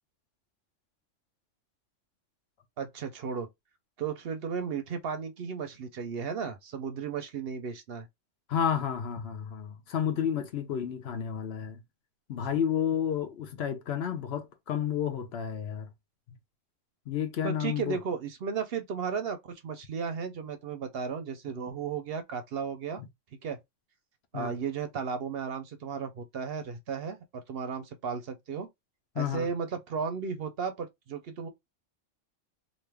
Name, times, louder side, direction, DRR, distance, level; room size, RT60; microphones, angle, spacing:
voice 1, 2.8-3.5 4.0-8.1 17.4-23.0 23.4-23.6 24.3-28.7 29.2-31.5, right 6 dB, 60° right, 0.7 m, -34 dB
voice 2, 8.5-11.8 12.3-15.9 17.1-18.0 24.3-24.6 29.2-29.5, left 8 dB, 60° left, 0.9 m, -31 dB
3.1 x 2.5 x 3.3 m
omnidirectional pair, 1.3 m